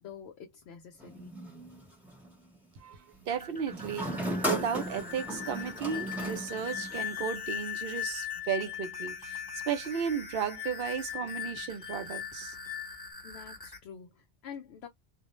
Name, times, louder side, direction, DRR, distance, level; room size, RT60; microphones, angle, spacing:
voice 1, 0.0-1.3 13.2-14.9, left 7 dB, 80° left, 0.8 m, -47 dB
sound 1, 1.0-2.3 3.7-7.2, equal, ahead, 0.9 m, -36 dB
sound 2, 3.1-13.8, left 1 dB, 20° left, 1.1 m, -47 dB
voice 2, 3.3-4.1 4.4-12.6, right 7 dB, 65° right, 0.7 m, -34 dB
sound 3, 4.9-13.1, left 13 dB, 60° left, 0.3 m, -39 dB
2.5 x 2.0 x 2.9 m
omnidirectional pair, 1.1 m